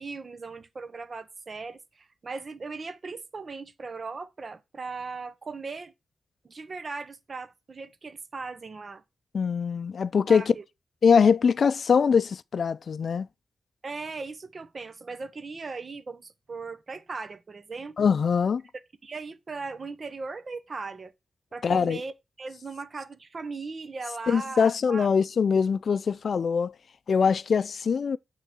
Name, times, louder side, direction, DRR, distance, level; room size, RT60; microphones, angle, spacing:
voice 1, 0.0-5.9 6.4-9.0 10.3-10.6 13.8-18.1 19.0-21.1 21.5-22.1 22.4-25.1, right 4 dB, 45° right, 1.0 m, -38 dB
voice 2, 9.3-10.5 11.0-13.3 18.0-18.6 21.6-22.0 24.3-26.7 27.1-28.2, left 6 dB, 65° left, 0.4 m, -23 dB
9.0 x 3.8 x 6.1 m
wide cardioid pair, 110°, 0 cm